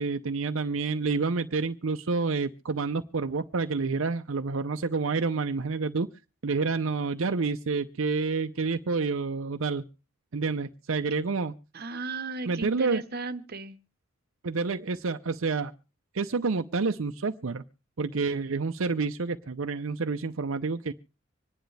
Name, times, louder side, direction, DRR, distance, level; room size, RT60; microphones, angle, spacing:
voice 1, 0.0-6.1 6.4-9.8 10.3-11.5 12.5-13.0 14.4-15.7 16.1-17.6 18.0-20.9, right 4 dB, 70° right, 7 dB, 0.6 m, -28 dB
voice 2, 11.7-13.8, right 3 dB, 50° right, 10 dB, 1.0 m, -35 dB
25.5 x 10.5 x 3.3 m, 0.33 s
head